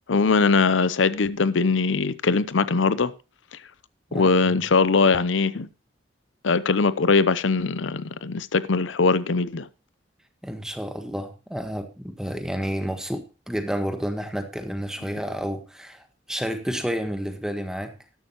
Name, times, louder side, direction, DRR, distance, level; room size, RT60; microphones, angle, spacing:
voice 1, 0.1-3.1 4.1-5.7 6.4-9.7, left 4 dB, 80° left, 0.7 m, -21 dB
voice 2, 4.1-4.6 10.4-18.0, equal, 5° right, 1.4 m, -30 dB
13.0 x 11.5 x 2.9 m
head